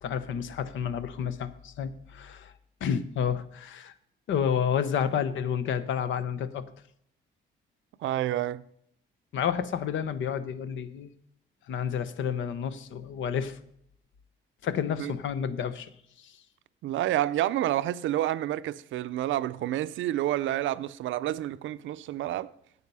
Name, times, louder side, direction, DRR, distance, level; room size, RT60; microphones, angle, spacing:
voice 1, 0.0-2.5 2.8-3.9 4.3-6.6 9.3-11.1 11.7-13.6 14.6-15.9 16.2-16.4, left 8 dB, 75° left, 0.9 m, -30 dB
voice 2, 8.0-8.6 15.0-15.1 16.8-22.5, right 13 dB, 75° right, 0.5 m, -29 dB
9.5 x 8.2 x 5.5 m
cardioid pair, 90°, 20 cm